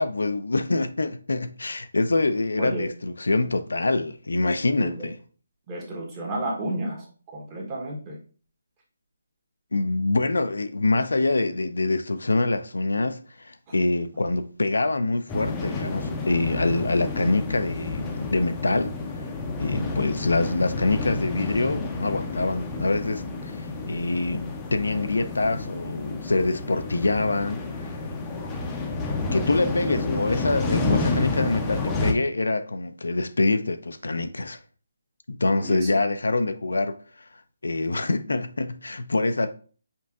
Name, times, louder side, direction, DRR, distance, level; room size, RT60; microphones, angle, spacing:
voice 1, 0.0-5.2 9.7-19.3 19.6-27.9 29.3-34.6 35.3-37.0 37.6-39.5, left 2 dB, 80° left, 0.4 m, -25 dB
voice 2, 4.8-5.1 5.7-7.1 7.3-8.2 13.7-13.8 35.6-35.9, right 1 dB, 25° right, 1.1 m, -31 dB
sound 1, 15.3-32.1, left 3 dB, 15° left, 0.5 m, -30 dB
5.2 x 2.6 x 2.4 m
figure-of-eight pair, 155°, 0 cm